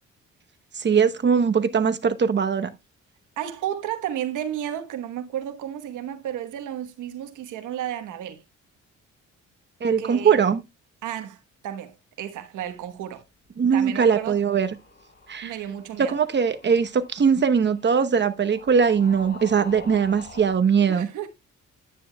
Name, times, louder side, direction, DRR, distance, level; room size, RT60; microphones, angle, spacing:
voice 1, 0.7-2.7 9.8-10.6 13.6-14.8 15.3-15.5 16.0-21.1, right 6 dB, 35° right, 0.9 m, -21 dB
voice 2, 3.4-8.4 10.0-10.4 11.0-13.2 13.7-14.4 15.4-16.2 20.9-21.3, right 10 dB, 85° right, 1.2 m, -32 dB
sound 1, 13.9-20.6, left 3 dB, 35° left, 4.7 m, -47 dB
9.9 x 9.4 x 2.3 m
cardioid pair, 90°, 30 cm